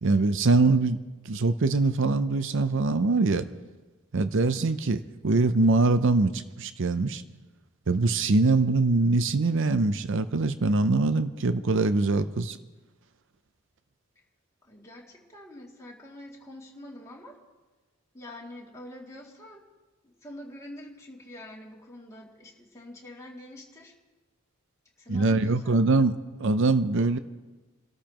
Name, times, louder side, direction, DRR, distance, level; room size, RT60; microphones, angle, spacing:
voice 1, 0.0-3.5 4.1-7.2 7.9-12.6 25.1-27.2, right 3 dB, 60° right, 11 dB, 0.6 m, -23 dB
voice 2, 14.6-17.4 18.1-19.6 20.0-23.9 25.0-25.7, left 1 dB, 15° left, -4 dB, 2.5 m, -45 dB
29.0 x 13.5 x 3.0 m, 1.2 s
head